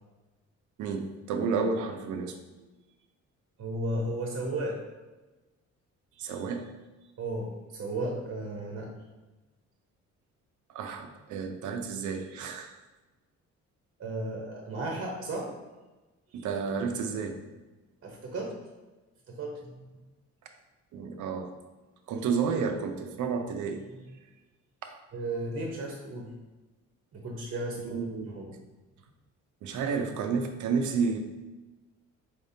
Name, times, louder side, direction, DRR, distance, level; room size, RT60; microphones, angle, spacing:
voice 1, 0.8-2.4 6.2-6.7 10.7-12.8 16.3-17.4 20.9-21.5 22.1-23.8 24.8-25.0 27.8-28.4 29.6-31.2, right 5 dB, 75° right, 5 dB, 0.6 m, -31 dB
voice 2, 3.6-4.8 7.2-8.9 14.0-15.5 18.0-18.5 19.3-19.7 23.9-24.1 25.1-26.3 27.1-28.5, right 1 dB, 45° right, 0 dB, 0.8 m, -34 dB
4.6 x 3.5 x 2.7 m, 1.2 s
cardioid pair, 90°, 30 cm